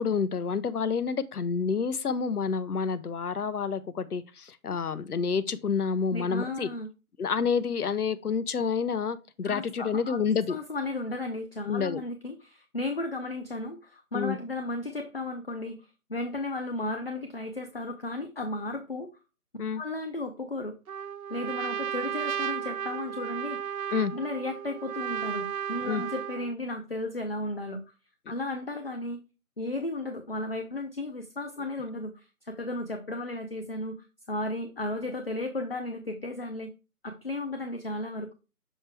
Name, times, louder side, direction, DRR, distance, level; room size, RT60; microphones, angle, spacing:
voice 1, 0.0-6.7 7.2-10.6 11.7-12.0 14.1-14.4 19.6-19.8 23.9-24.1 25.9-26.0, left 6 dB, 90° left, 0.7 m, -28 dB
voice 2, 6.1-6.9 9.4-19.1 19.7-20.7 21.3-23.8 24.1-27.8 28.3-29.2 29.6-36.7 37.0-38.3, left 2 dB, 40° left, 0.6 m, -34 dB
Trumpet, 20.9-26.5, right 9 dB, 70° right, 0.5 m, -34 dB
6.5 x 4.3 x 3.3 m
figure-of-eight pair, 170°, 44 cm